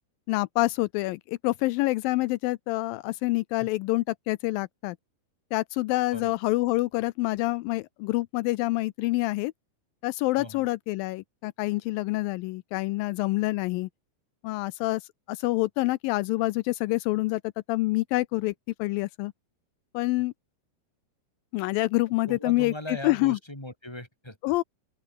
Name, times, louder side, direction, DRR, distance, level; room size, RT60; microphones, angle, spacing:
voice 1, 0.3-5.0 5.5-9.5 10.0-13.9 14.4-15.0 15.3-18.5 18.8-19.3 19.9-20.3 21.5-23.4 24.4-24.6, left 20 dB, 85° left, 2.0 m, -27 dB
voice 2, 10.4-10.7 22.3-24.5, left 1 dB, 5° left, 6.1 m, -39 dB
open air
omnidirectional pair, 4.6 m